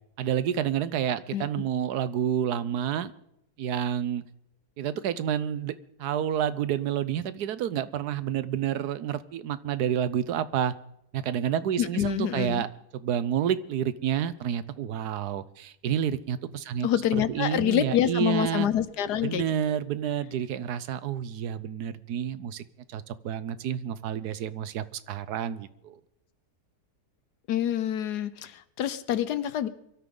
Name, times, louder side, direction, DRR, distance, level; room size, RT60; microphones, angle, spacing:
voice 1, 0.2-3.1 3.6-4.2 4.8-10.7 11.1-12.7 12.9-16.9 17.1-18.7 19.2-22.6 22.9-26.0, right 9 dB, 80° right, 15 dB, 1.3 m, -29 dB
voice 2, 11.8-12.6 16.8-19.4 27.5-29.7, left 10 dB, 90° left, 15 dB, 1.5 m, -26 dB
23.5 x 13.0 x 3.9 m, 0.78 s
omnidirectional pair, 1.7 m